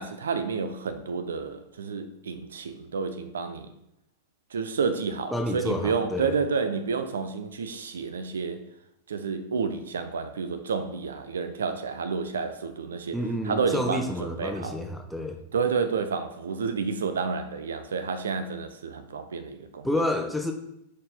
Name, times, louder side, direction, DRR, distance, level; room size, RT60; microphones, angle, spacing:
voice 1, 0.0-3.7 4.5-8.6 9.1-13.2 13.5-14.8 15.5-19.9, right 5 dB, 65° right, 0.5 m, -30 dB
voice 2, 5.3-6.3 13.1-15.4 19.8-20.5, left 1 dB, ahead, 0.8 m, -29 dB
5.1 x 4.1 x 5.8 m
figure-of-eight pair, 90°, 0 cm